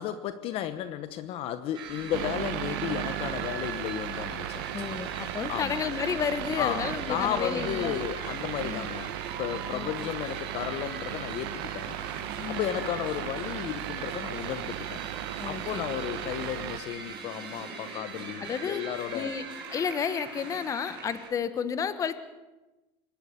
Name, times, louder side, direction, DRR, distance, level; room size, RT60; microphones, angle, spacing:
voice 1, 0.0-4.6 5.5-5.8 6.6-12.0 12.5-15.0 15.5-19.3, left 11 dB, 45° left, 12 dB, 1.0 m, -34 dB
sound 1, 1.7-21.3, right 5 dB, 35° right, 7.3 m, -41 dB
sound 2, 2.1-16.8, right 15 dB, 65° right, 1.1 m, -36 dB
voice 2, 4.7-8.0 8.6-8.9 9.7-10.1 12.4-12.8 15.4-15.8 18.4-18.8 19.1-19.5 19.7-22.2, left 7 dB, 25° left, 13 dB, 1.2 m, -32 dB
26.0 x 12.0 x 8.5 m, 1.1 s
supercardioid pair, 145°, 14 cm